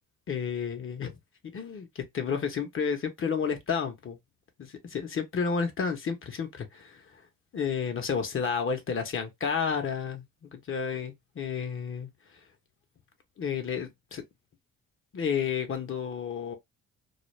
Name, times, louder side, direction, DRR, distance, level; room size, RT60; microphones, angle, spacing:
voice 1, 0.3-1.1 1.5-4.2 4.6-7.2 7.5-12.1 13.4-14.2 15.1-16.6, left 6 dB, 45° left, 0.8 m, -31 dB
2.4 x 2.2 x 3.1 m
cardioid pair, 90°, 30 cm